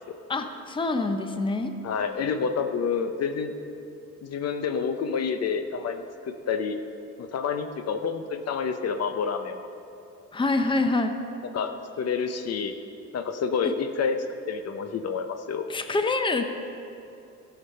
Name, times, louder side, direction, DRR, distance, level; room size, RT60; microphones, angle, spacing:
voice 1, 0.3-1.7 10.3-11.1 13.6-13.7 15.7-16.4, left 3 dB, 15° left, 7 dB, 0.7 m, -26 dB
voice 2, 1.8-3.5 4.2-6.8 7.2-9.6 11.5-12.7 13.1-14.2 14.5-15.7, left 6 dB, 55° left, 7 dB, 0.7 m, -28 dB
13.0 x 6.0 x 5.5 m, 2.8 s
cardioid pair, 90°, 30 cm